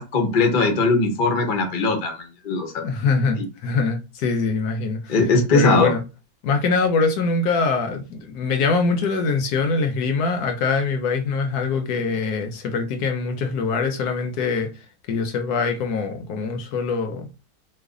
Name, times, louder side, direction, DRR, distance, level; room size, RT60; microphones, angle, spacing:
voice 1, 0.0-2.1 2.4-2.8 5.1-5.9, left 3 dB, 55° left, 0.5 m, -20 dB
voice 2, 2.8-5.2 5.5-6.0 6.4-17.3, left 4 dB, 70° left, 1.1 m, -23 dB
3.1 x 2.1 x 3.6 m
omnidirectional pair, 1.9 m